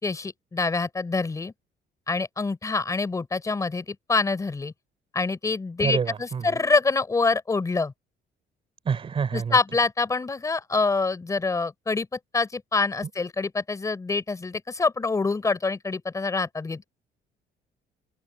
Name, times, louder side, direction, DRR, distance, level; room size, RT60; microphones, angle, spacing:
voice 1, 0.0-1.5 2.1-4.7 5.1-7.9 9.3-16.8, left 4 dB, 15° left, 3.9 m, -26 dB
voice 2, 5.8-6.5 8.9-9.6, right 6 dB, 30° right, 3.7 m, -27 dB
open air
cardioid pair, 165°, 18 cm